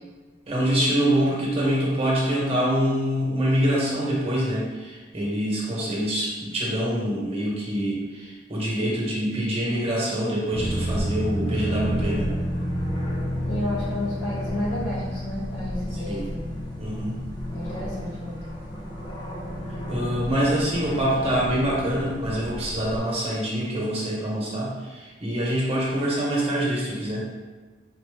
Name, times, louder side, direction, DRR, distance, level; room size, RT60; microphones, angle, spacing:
voice 1, 0.5-12.3 15.9-16.3 16.8-17.2 19.9-27.3, equal, 35° right, -5 dB, 0.9 m, -25 dB
sound 1, 10.5-23.0, equal, 25° left, 0.7 m, -31 dB
voice 2, 13.5-16.6 17.5-18.6, left 1 dB, 85° left, -6 dB, 1.4 m, -31 dB
4.0 x 2.1 x 3.3 m, 1.3 s
head